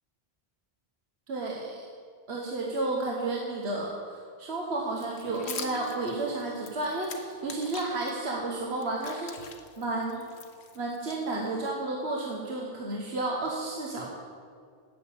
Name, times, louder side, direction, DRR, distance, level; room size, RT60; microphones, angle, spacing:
voice 1, 1.3-1.9 2.3-10.2 10.7-14.1, right 2 dB, 80° right, -1 dB, 1.4 m, -32 dB
sound 1, 4.9-8.1 8.6-11.7, left 6 dB, 85° left, 1.2 m, -44 dB
Guitar, 5.2-8.9, right 4 dB, 40° right, 2.0 m, -47 dB
9.4 x 7.5 x 8.6 m, 2.2 s
omnidirectional pair, 1.1 m